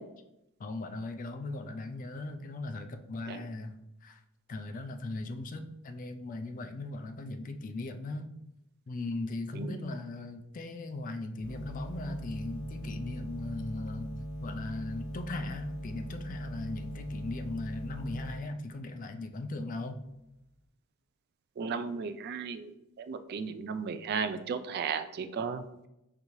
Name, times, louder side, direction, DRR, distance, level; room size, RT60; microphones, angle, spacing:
voice 1, 0.6-4.2 4.5-8.3 8.9-14.1 14.4-20.0, left 2 dB, 40° left, 6 dB, 0.4 m, -38 dB
sound 1, 11.4-18.4, equal, 65° right, 1.3 m, -40 dB
voice 2, 21.6-25.6, right 5 dB, 50° right, 10 dB, 0.3 m, -35 dB
5.1 x 2.7 x 3.0 m, 0.86 s
head